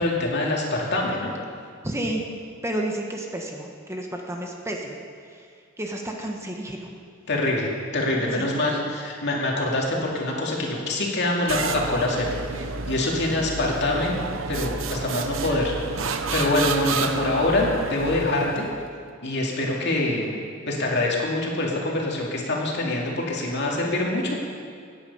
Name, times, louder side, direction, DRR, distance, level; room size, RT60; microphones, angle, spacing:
voice 1, 0.0-1.3 7.3-14.2 14.5-18.7 19.2-20.4 20.7-24.4, left 2 dB, 55° left, -2 dB, 2.5 m, -25 dB
voice 2, 1.8-2.2 2.6-5.0 5.2-5.5 5.8-6.9 8.3-8.5, right 1 dB, 15° right, 1 dB, 1.2 m, -31 dB
sound 1, 11.5-18.9, right 4 dB, 65° right, 0.8 m, -30 dB
17.0 x 9.7 x 5.6 m, 2.3 s
head